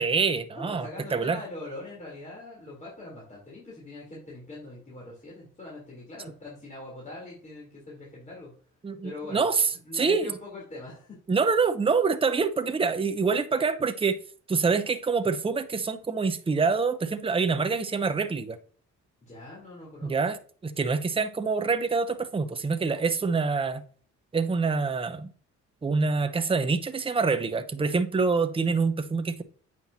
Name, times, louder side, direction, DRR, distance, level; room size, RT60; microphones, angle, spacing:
voice 1, 0.0-1.4 8.8-10.4 11.3-14.2 14.5-18.6 20.0-23.8 24.3-25.3 25.8-29.4, right 4 dB, 20° right, 0.8 m, -26 dB
voice 2, 0.5-8.5 9.0-9.5 9.8-11.2 19.2-20.1, left 2 dB, 25° left, 3.6 m, -42 dB
8.6 x 6.0 x 2.8 m
cardioid pair, 90°, 30 cm